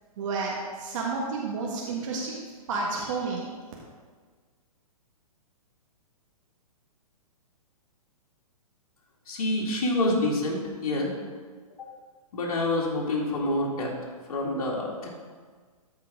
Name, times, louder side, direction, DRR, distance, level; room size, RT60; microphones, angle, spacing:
voice 1, 0.2-2.4 2.7-3.5, right 4 dB, 55° right, -3 dB, 1.5 m, -30 dB
voice 2, 9.3-11.1 11.8-11.9 12.3-13.9 14.3-15.1, left 1 dB, 65° left, -3 dB, 2.0 m, -27 dB
13.5 x 4.7 x 3.6 m, 1.5 s
hypercardioid pair, 130°, 19 cm